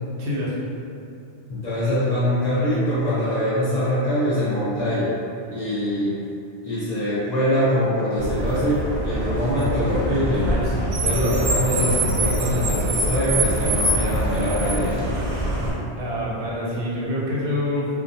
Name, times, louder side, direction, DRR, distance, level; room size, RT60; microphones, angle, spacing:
voice 1, 0.2-0.5 15.9-17.9, left 1 dB, 80° right, -5 dB, 0.9 m, -26 dB
voice 2, 1.5-5.1 5.5-6.2 6.6-10.6 11.0-15.0, left 1 dB, 45° left, -11 dB, 0.6 m, -23 dB
Car, 8.2-15.7, right 1 dB, 55° right, 0.6 m, -24 dB
2.3 x 2.0 x 2.6 m, 2.6 s
omnidirectional pair, 1.1 m